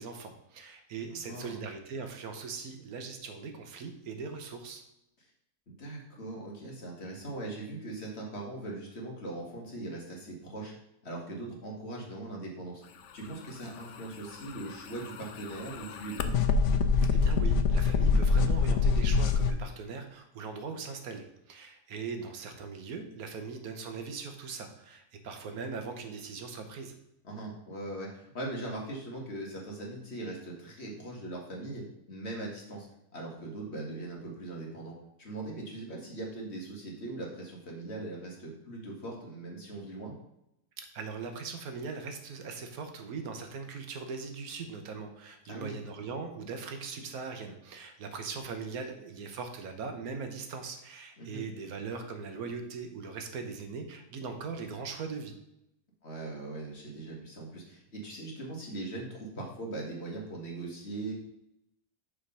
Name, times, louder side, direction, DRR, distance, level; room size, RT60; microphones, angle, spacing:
voice 1, 0.0-4.8 17.1-26.9 40.8-55.4, right 5 dB, 70° right, 6 dB, 1.3 m, -40 dB
voice 2, 1.1-1.6 5.7-10.7 11.0-12.8 13.1-16.3 27.2-31.8 32.1-32.9 33.1-34.9 35.2-40.1 45.5-45.8 51.2-51.4 56.0-61.1, right 2 dB, 45° left, -2 dB, 1.7 m, -40 dB
sound 1, 14.4-19.5, left 4 dB, 65° left, 0.8 m, -25 dB
6.6 x 3.6 x 5.4 m, 0.82 s
omnidirectional pair, 1.7 m